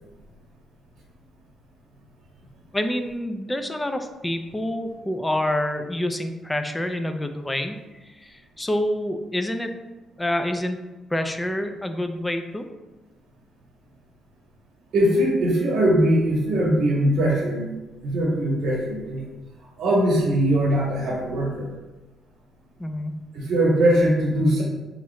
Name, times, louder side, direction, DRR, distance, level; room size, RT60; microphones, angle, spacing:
voice 1, 2.7-7.8 8.1-9.7 10.2-10.8 11.1-12.7 22.8-23.2, left 1 dB, 10° left, 6 dB, 0.4 m, -27 dB
voice 2, 14.9-17.7 18.0-19.2 19.8-21.7 23.3-24.6, right 1 dB, 75° right, -3 dB, 1.0 m, -21 dB
3.5 x 3.0 x 3.1 m, 1.1 s
cardioid pair, 90°, 0 cm